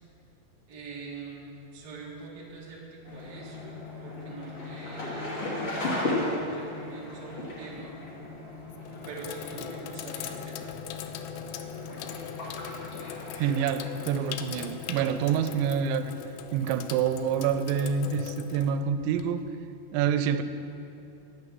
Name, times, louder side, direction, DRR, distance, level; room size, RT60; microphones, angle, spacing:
voice 1, 0.7-7.9 9.0-10.8, right 3 dB, 40° right, -4 dB, 1.4 m, -44 dB
sound 1, 3.1-15.5, left 2 dB, 40° left, 2.5 m, -36 dB
Sink (filling or washing), 7.5-8.0 8.6-19.5, left 9 dB, 85° left, 2.8 m, -41 dB
voice 2, 13.4-16.1 16.5-19.4 19.9-20.4, right 7 dB, 90° right, 11 dB, 2.9 m, -27 dB
11.0 x 9.0 x 7.6 m, 2.9 s
omnidirectional pair, 5.1 m